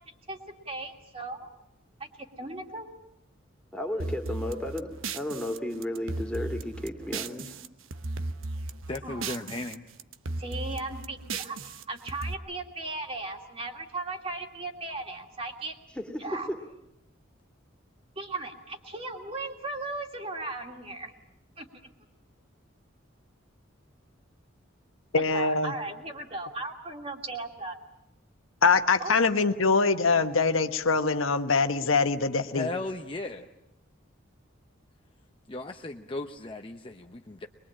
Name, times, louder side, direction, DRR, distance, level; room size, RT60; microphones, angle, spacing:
voice 1, 0.6-1.5 2.4-2.9 9.0-9.4 10.4-15.8 16.2-16.5 18.2-21.1 21.6-21.7 25.3-27.8 29.0-29.1, right 2 dB, 30° right, 2.7 m, -37 dB
voice 2, 3.7-7.6 16.0-16.6, left 1 dB, 5° left, 2.4 m, -34 dB
sound 1, 4.0-7.7 7.9-9.7 10.0-12.3, right 3 dB, 85° right, 1.0 m, -36 dB
voice 3, 8.9-9.8 32.5-33.5 35.5-37.5, left 2 dB, 25° left, 0.8 m, -36 dB
voice 4, 25.1-25.7 28.6-32.7, left 4 dB, 90° left, 1.3 m, -23 dB
22.5 x 22.5 x 8.8 m
head